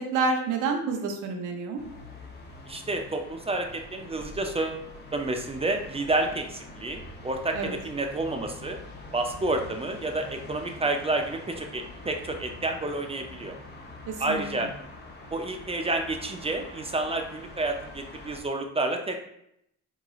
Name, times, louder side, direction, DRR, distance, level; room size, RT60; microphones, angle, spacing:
voice 1, 0.0-1.8 7.5-7.7 14.1-14.7, right 4 dB, 90° right, 3 dB, 0.6 m, -29 dB
sound 1, 1.8-18.4, left 2 dB, 35° left, 0.7 m, -45 dB
voice 2, 2.7-4.8 5.1-8.8 9.1-13.5 14.2-14.7 15.3-19.2, right 2 dB, 20° right, 4 dB, 0.4 m, -30 dB
3.7 x 3.0 x 2.3 m, 0.76 s
cardioid pair, 90°, 30 cm